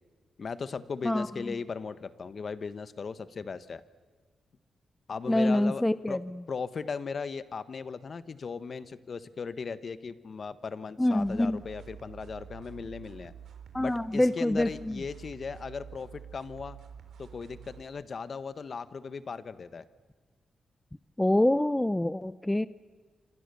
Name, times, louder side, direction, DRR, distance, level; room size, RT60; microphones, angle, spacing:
voice 1, 0.4-3.8 5.1-6.2 6.5-13.3 13.8-16.8 17.2-19.8, left 5 dB, 50° left, 13 dB, 1.4 m, -37 dB
voice 2, 1.0-1.5 5.3-6.2 11.0-11.6 13.7-15.0 21.2-22.7, left 1 dB, 10° left, 15 dB, 0.7 m, -26 dB
sound 1, 11.2-17.8, right 8 dB, 80° right, 3.8 m, -48 dB
27.0 x 26.5 x 7.0 m, 1.5 s
cardioid pair, 80°, 0 cm